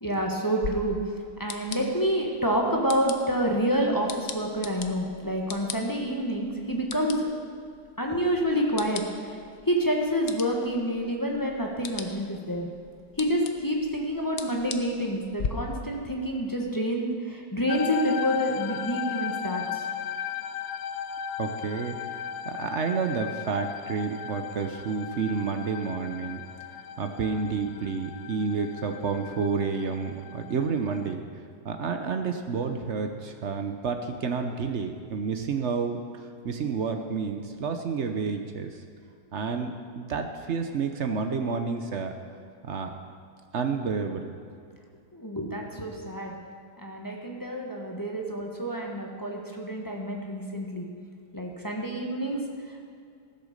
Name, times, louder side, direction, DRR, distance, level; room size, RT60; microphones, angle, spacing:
voice 1, 0.0-1.0 1.4-7.3 8.0-9.4 9.6-12.7 13.2-19.8 45.1-46.3 46.8-50.9 51.3-52.8, equal, 15° left, 0 dB, 1.0 m, -28 dB
sound 1, 0.6-15.5, left 6 dB, 65° left, 0.6 m, -41 dB
sound 2, 17.7-31.1, left 8 dB, 85° left, 1.4 m, -36 dB
voice 2, 21.4-22.2 22.4-26.4 26.7-31.2 31.6-38.8 39.3-42.1 42.6-42.9 43.5-44.3, right 5 dB, 60° right, 6 dB, 0.7 m, -30 dB
15.0 x 8.1 x 6.5 m, 2.4 s
omnidirectional pair, 2.1 m